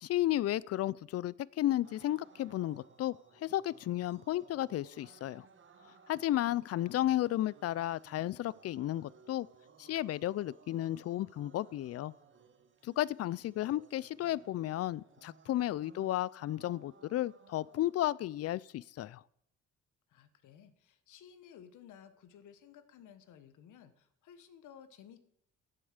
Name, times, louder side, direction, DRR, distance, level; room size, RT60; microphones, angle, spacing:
voice 1, 0.0-5.5 6.1-9.5 9.8-12.1 12.8-19.2, left 14 dB, 55° left, 0.4 m, -33 dB
sound 1, 1.8-18.0, right 5 dB, 40° right, 1.4 m, -61 dB
voice 2, 6.5-7.2 20.1-25.2, left 8 dB, 80° left, 1.2 m, -56 dB
9.0 x 7.9 x 6.6 m
cardioid pair, 90°, 30 cm